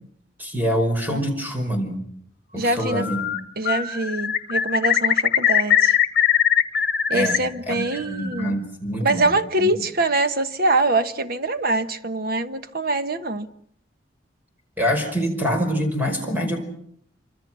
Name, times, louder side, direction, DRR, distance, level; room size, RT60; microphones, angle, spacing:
voice 1, 0.4-2.0 2.5-3.3 7.1-7.4 7.7-9.7 14.8-16.6, equal, 10° right, 5.2 m, -25 dB
voice 2, 2.6-3.1 3.6-6.0 7.1-8.6 9.0-13.5, right 2 dB, 50° right, 1.3 m, -24 dB
Bird, 2.8-3.4 3.7-7.4 7.7-8.5, left 10 dB, 55° left, 1.8 m, -21 dB
27.0 x 25.0 x 6.2 m
head